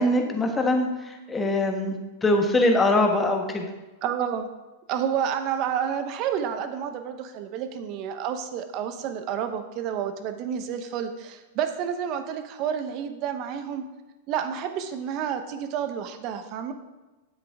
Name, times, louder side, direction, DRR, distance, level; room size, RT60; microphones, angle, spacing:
voice 1, 0.0-3.7, left 1 dB, 15° left, 3 dB, 1.5 m, -23 dB
voice 2, 4.0-4.5 4.9-13.9 14.3-16.7, right 8 dB, 45° right, 8 dB, 1.0 m, -30 dB
10.0 x 7.6 x 3.6 m, 1.1 s
hypercardioid pair, 110°, 0 cm